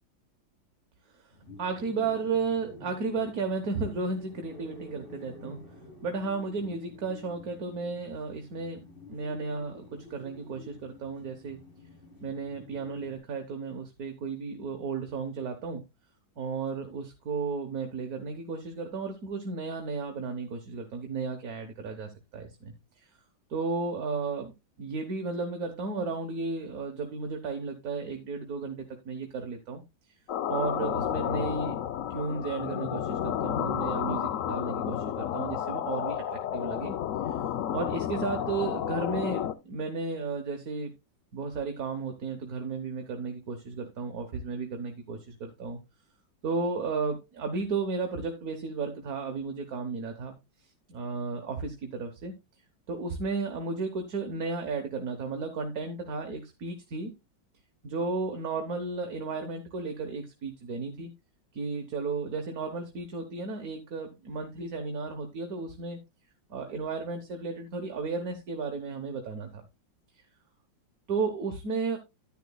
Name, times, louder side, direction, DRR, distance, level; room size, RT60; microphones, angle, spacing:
sound 1, 1.3-13.2, left 2 dB, 25° left, 4.0 m, -50 dB
voice 1, 1.6-5.6 6.0-11.6 12.2-15.8 16.4-22.7 23.5-29.8 30.5-31.8 32.1-36.9 37.2-37.3 37.7-40.9 41.3-45.8 46.4-50.3 50.6-52.3 52.9-57.1 57.8-61.1 61.5-66.0 66.5-69.6 71.1-72.0, right 4 dB, 55° right, 5 dB, 1.5 m, -34 dB
sound 2, 30.3-39.5, left 10 dB, 70° left, 0.7 m, -31 dB
11.0 x 10.0 x 2.3 m, 0.23 s
omnidirectional pair, 2.0 m